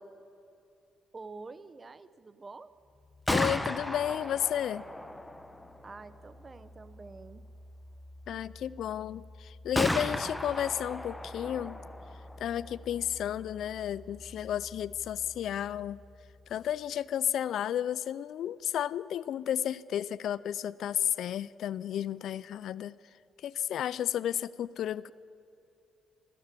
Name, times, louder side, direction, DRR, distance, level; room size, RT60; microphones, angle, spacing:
voice 1, 1.1-2.7 5.8-7.4, right 3 dB, 30° right, 14 dB, 0.6 m, -47 dB
Gunshot gunfire, 3.0-16.8, left 1 dB, 5° left, 0.9 m, -38 dB
voice 2, 3.3-4.8 8.3-11.8 12.4-16.0 16.5-22.9 23.4-25.1, left 10 dB, 70° left, 18 dB, 0.3 m, -32 dB
16.0 x 13.0 x 6.7 m, 2.7 s
cardioid pair, 90°, 0 cm